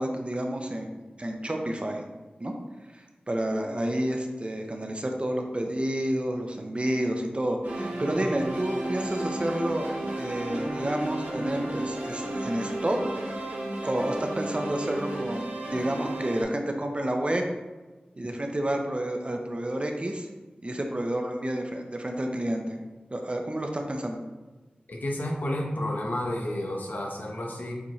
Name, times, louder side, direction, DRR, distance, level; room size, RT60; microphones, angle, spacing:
voice 1, 0.0-2.1 2.4-2.5 2.9-9.9 10.2-13.0 13.8-17.4 18.2-20.3 20.6-22.8 23.1-24.2, right 1 dB, 35° right, 3 dB, 0.7 m, -30 dB
sound 1, 7.6-16.4, right 1 dB, 75° right, 1.6 m, -33 dB
voice 2, 24.9-27.7, left 1 dB, 65° left, -1 dB, 1.2 m, -31 dB
7.2 x 4.2 x 3.2 m, 1.2 s
wide cardioid pair, 60°, 3 cm